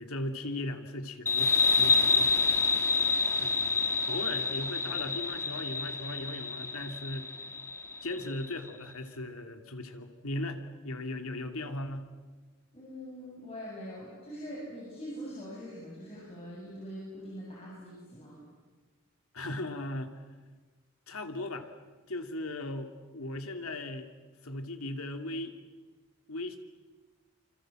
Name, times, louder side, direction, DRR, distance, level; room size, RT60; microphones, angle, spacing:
voice 1, 0.0-2.3 3.4-7.3 8.0-12.1 19.3-20.1 21.1-21.7 22.1-24.1 24.4-25.5 26.3-26.6, left 2 dB, 80° left, 6 dB, 2.7 m, -38 dB
sound 1, 1.3-8.5, left 4 dB, 10° left, 1.6 m, -28 dB
voice 2, 12.7-18.4, equal, 30° left, -5 dB, 7.4 m, -43 dB
27.5 x 26.5 x 7.7 m, 1.3 s
head